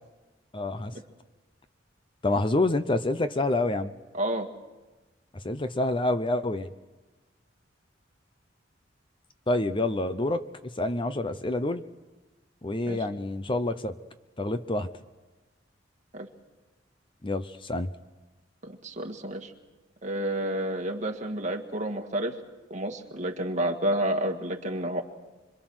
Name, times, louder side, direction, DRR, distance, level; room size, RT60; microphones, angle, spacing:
voice 1, 0.5-0.9 2.2-3.9 5.4-6.7 9.5-10.4 10.8-11.8 12.6-14.0 14.4-14.9 17.2-17.9, left 2 dB, 30° left, 10 dB, 0.7 m, -27 dB
voice 2, 4.1-4.5 12.8-13.0 16.1-16.3 18.6-19.5 20.0-22.4 22.7-25.0, right 1 dB, 40° right, 3 dB, 1.9 m, -30 dB
26.0 x 24.0 x 6.3 m, 1.2 s
head